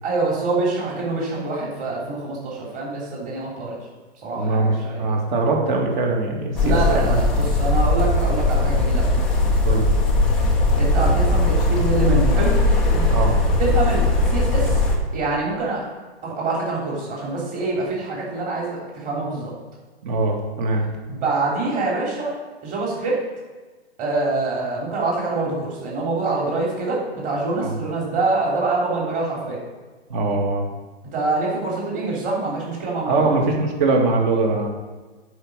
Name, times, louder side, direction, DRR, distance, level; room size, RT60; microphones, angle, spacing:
voice 1, 0.0-3.8 4.2-5.0 6.6-9.1 10.8-12.5 12.9-13.1 13.6-14.0 14.3-14.8 15.1-15.8 16.2-19.5 21.1-22.3 22.6-23.2 24.0-29.6 31.1-33.3, right 3 dB, 25° right, -4 dB, 3.4 m, -25 dB
voice 2, 4.4-7.2 9.6-9.9 13.1-13.4 20.0-20.8 27.6-27.8 30.1-30.7 33.0-34.7, right 3 dB, 45° right, 1 dB, 2.5 m, -22 dB
sound 1, 6.5-15.0, left 2 dB, 5° left, 0.3 m, -19 dB
9.7 x 5.2 x 6.6 m, 1.3 s
hypercardioid pair, 140°, 34 cm